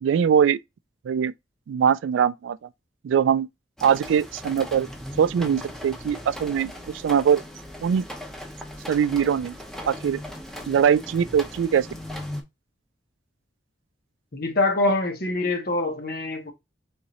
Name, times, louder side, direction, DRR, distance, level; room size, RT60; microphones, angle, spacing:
voice 1, 0.0-0.6 1.1-1.3 1.7-2.6 3.0-3.5 3.8-4.9 5.2-6.7 7.0-7.4 7.8-8.0 8.9-9.5 9.9-10.2 10.7-11.9, right 8 dB, 90° right, 0.3 m, -21 dB
sound 1, 3.8-12.4, left 1 dB, 5° left, 0.7 m, -38 dB
voice 2, 14.3-16.5, left 2 dB, 55° left, 1.0 m, -24 dB
3.6 x 3.0 x 4.1 m
head